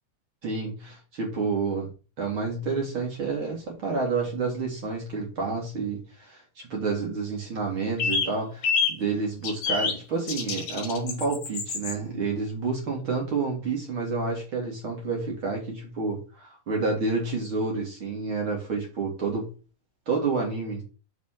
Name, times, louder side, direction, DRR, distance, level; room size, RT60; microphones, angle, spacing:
voice 1, 0.4-1.9 2.2-19.5 20.1-20.8, right 4 dB, 40° right, 2.1 m, -29 dB
sound 1, 8.0-8.3 8.6-9.0 9.4-10.0 10.3-11.9, left 5 dB, 55° left, 2.7 m, -27 dB
6.3 x 4.1 x 5.7 m
omnidirectional pair, 4.7 m